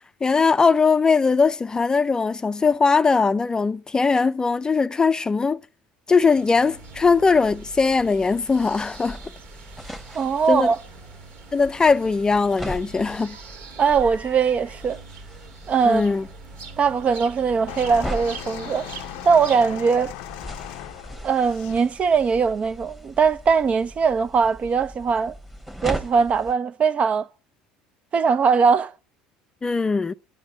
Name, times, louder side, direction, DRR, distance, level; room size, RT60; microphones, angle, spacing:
voice 1, 0.2-5.6 6.1-9.2 10.5-10.7 11.5-13.4 15.8-16.3 29.6-30.1, left 4 dB, 20° left, 0.5 m, -20 dB
sound 1, 6.2-19.8, right 4 dB, 65° right, 2.2 m, -44 dB
sound 2, 6.7-26.5, equal, 5° right, 1.4 m, -39 dB
voice 2, 10.1-10.8 13.8-15.0 15.7-16.1 16.8-18.9 19.2-20.1 21.2-25.3 25.8-27.3 28.1-28.9, right 5 dB, 40° right, 0.6 m, -20 dB
sound 3, 17.7-21.8 22.7-22.8, left 16 dB, 70° left, 0.5 m, -38 dB
10.5 x 6.9 x 8.1 m
hypercardioid pair, 75°, 3 cm